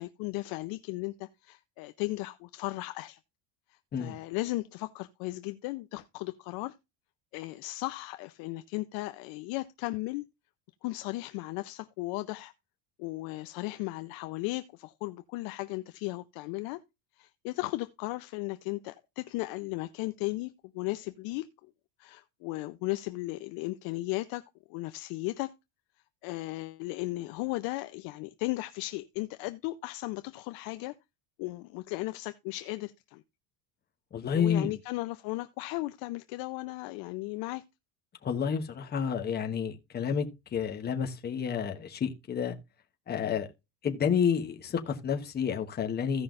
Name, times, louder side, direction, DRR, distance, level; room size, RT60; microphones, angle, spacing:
voice 1, 0.0-3.2 3.7-6.7 7.3-10.3 10.8-12.5 13.0-16.8 17.2-21.7 22.0-24.4 24.7-25.5 26.2-31.0 31.4-33.2 34.3-37.6, left 20 dB, 50° left, 0.6 m, -36 dB
voice 2, 34.1-34.7 38.2-40.3 40.5-42.6 43.1-43.5 43.8-46.2, left 7 dB, 20° left, 1.1 m, -30 dB
16.0 x 5.5 x 2.5 m
cardioid pair, 155°, 46 cm